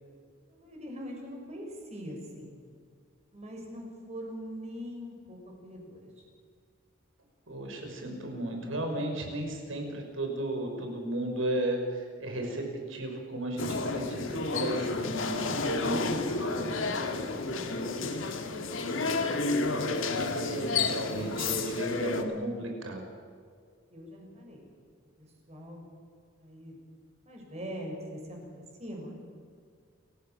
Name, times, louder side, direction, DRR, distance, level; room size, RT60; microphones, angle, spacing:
voice 1, 0.5-2.6 3.3-6.2 8.9-9.1 16.3-17.7 18.0-19.1 22.1-22.2 23.9-24.6 25.2-25.8 26.4-26.9 27.2-29.2, equal, 35° right, 0 dB, 6.5 m, -43 dB
voice 2, 7.5-16.1 20.3-23.1, right 1 dB, 80° right, 3 dB, 5.8 m, -34 dB
sound 1, 13.6-22.2, left 3 dB, 75° left, 2.2 m, -30 dB
29.0 x 16.0 x 7.6 m, 2.1 s
head